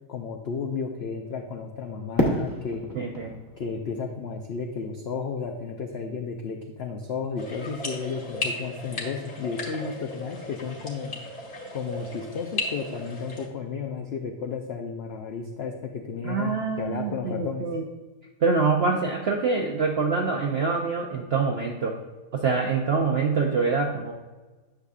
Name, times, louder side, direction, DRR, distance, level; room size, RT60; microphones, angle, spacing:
voice 1, 0.0-2.9 3.6-11.1 11.7-17.7, left 5 dB, 75° left, 3 dB, 0.5 m, -33 dB
Fireworks, 2.2-5.2, equal, 15° left, 0.8 m, -30 dB
voice 2, 2.9-3.4 16.2-17.8 18.4-22.0 22.3-24.1, right 4 dB, 70° right, 1 dB, 0.6 m, -25 dB
sound 1, 7.4-13.5, left 2 dB, 40° left, 1.5 m, -36 dB
9.9 x 6.7 x 2.4 m, 1.2 s
omnidirectional pair, 1.8 m